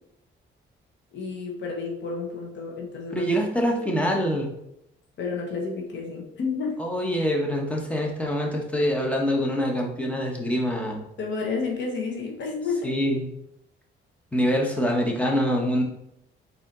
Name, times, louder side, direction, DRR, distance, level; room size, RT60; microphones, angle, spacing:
voice 1, 1.1-3.3 5.2-6.8 11.2-13.0, left 4 dB, 65° left, -1 dB, 1.0 m, -30 dB
voice 2, 3.1-4.5 6.8-11.0 12.8-13.2 14.3-15.8, equal, 5° left, 0 dB, 1.0 m, -25 dB
4.1 x 2.8 x 3.8 m, 0.80 s
cardioid pair, 90°, 20 cm